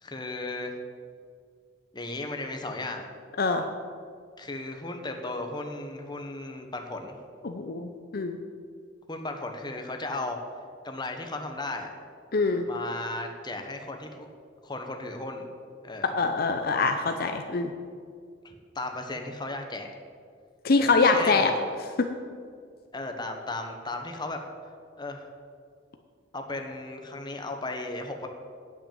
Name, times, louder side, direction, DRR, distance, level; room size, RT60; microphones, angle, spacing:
voice 1, 0.0-0.8 1.9-3.1 4.4-7.2 9.1-10.4 10.8-11.9 12.7-14.3 14.6-15.5 15.8-16.1 18.4-19.9 20.8-21.5 22.9-24.4 25.0-25.2 26.3-28.3, left 2 dB, 25° left, 4 dB, 1.2 m, -35 dB
voice 2, 7.4-8.4 12.3-12.7 16.2-17.7 20.6-21.5 22.0-22.1, left 3 dB, 55° left, 5 dB, 0.7 m, -24 dB
9.1 x 8.1 x 9.0 m, 2.1 s
head